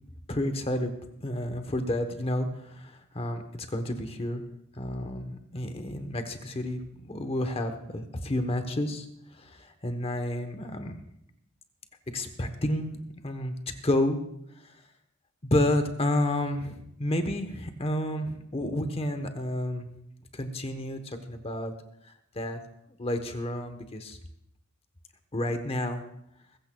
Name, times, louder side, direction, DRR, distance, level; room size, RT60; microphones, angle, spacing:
voice 1, 0.3-0.9 1.2-4.4 4.8-9.1 9.4-9.5 9.8-11.0 12.1-13.5 13.8-14.2 15.4-19.9 20.3-21.0 21.3-21.7 22.4-22.6 23.0-24.2 25.3-26.0, left 1 dB, 25° left, 7 dB, 1.0 m, -30 dB
21.5 x 14.5 x 2.3 m, 0.76 s
head